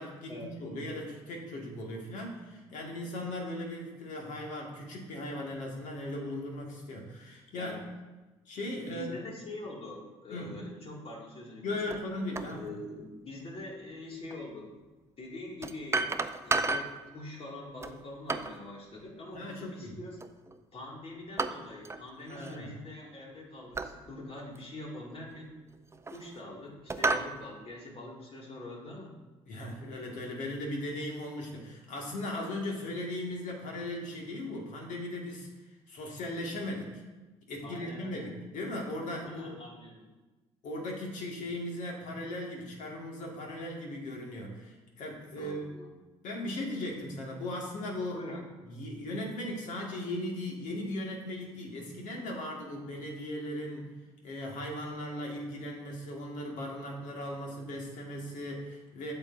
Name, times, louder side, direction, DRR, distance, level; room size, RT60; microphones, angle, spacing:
voice 1, 0.0-7.8 8.5-9.2 10.3-10.6 11.6-12.7 19.3-20.0 22.3-22.7 29.5-35.5 35.9-37.0 37.5-39.6 40.6-45.7 46.2-48.2 48.7-53.9 54.2-59.1, left 1 dB, 65° left, -1 dB, 1.9 m, -38 dB
voice 2, 8.8-11.8 12.5-14.8 15.2-20.2 20.7-25.5 26.1-29.1 37.6-38.3 39.2-40.1 45.4-45.9 48.1-48.4, left 2 dB, 45° left, -2 dB, 2.2 m, -44 dB
sound 1, 11.9-12.0 12.4-12.5 14.3-14.4 15.6-17.0 17.8-18.6 20.2-20.6 21.4-22.0 22.3-22.6 23.7-24.0 24.6-24.7 25.6-26.4 26.9-27.3, right 3 dB, 20° right, 0.5 m, -32 dB
8.5 x 6.6 x 2.6 m, 1.2 s
hypercardioid pair, 55°, 14 cm